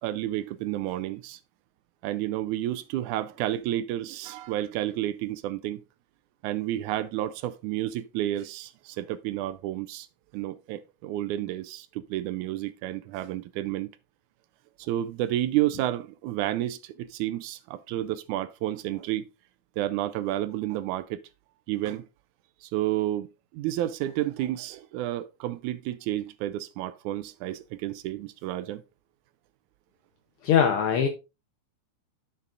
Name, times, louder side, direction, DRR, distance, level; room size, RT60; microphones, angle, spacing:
voice 1, 0.0-1.4 2.0-5.8 6.4-10.1 10.3-13.9 14.8-19.3 19.8-21.2 21.7-22.0 22.6-23.3 23.5-28.8, right 14 dB, 85° right, 2.0 m, -30 dB
voice 2, 30.4-31.1, left 8 dB, 65° left, 1.4 m, -21 dB
9.8 x 6.8 x 2.5 m
omnidirectional pair, 3.4 m